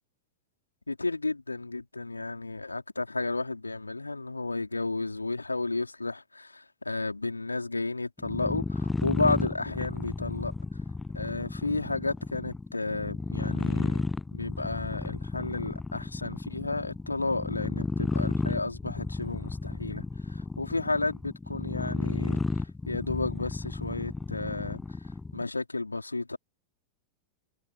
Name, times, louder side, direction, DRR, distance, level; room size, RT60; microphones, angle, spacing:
voice 1, 0.9-10.5 11.1-14.1 14.3-24.8 25.3-26.4, left 3 dB, 80° left, 4.1 m, -32 dB
sound 1, 8.2-25.5, left 3 dB, 10° left, 0.3 m, -33 dB
figure-of-eight pair, 90°, 0 cm